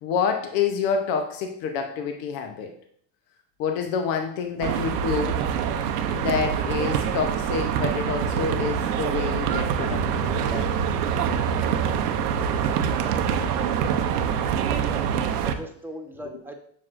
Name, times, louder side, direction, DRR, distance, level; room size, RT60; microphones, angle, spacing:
voice 1, 0.0-2.7 3.6-5.4 6.1-10.7 14.2-14.3, left 6 dB, 75° left, 5 dB, 0.9 m, -28 dB
sound 1, 4.6-15.5, right 7 dB, 90° right, 0.6 m, -25 dB
voice 2, 14.6-15.1 15.4-16.5, equal, 5° right, 3 dB, 1.2 m, -39 dB
7.4 x 6.0 x 2.6 m, 0.64 s
hypercardioid pair, 70°, 45 cm